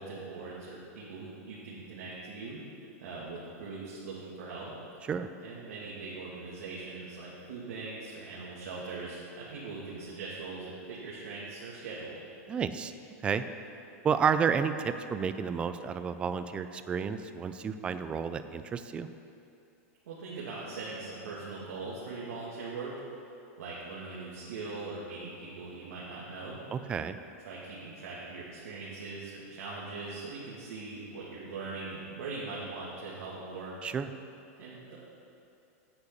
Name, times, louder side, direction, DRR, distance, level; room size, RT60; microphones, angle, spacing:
voice 1, 0.0-2.6 3.0-4.8 5.4-12.2 20.1-22.9 23.6-26.6 27.4-33.8 34.6-34.9, right 3 dB, 75° right, -7 dB, 2.6 m, -41 dB
voice 2, 12.5-12.9 13.2-13.4 14.0-19.1 26.7-27.2 33.8-34.1, right 6 dB, 15° right, 10 dB, 0.4 m, -31 dB
9.7 x 6.8 x 8.3 m, 2.7 s
supercardioid pair, 165°, 8 cm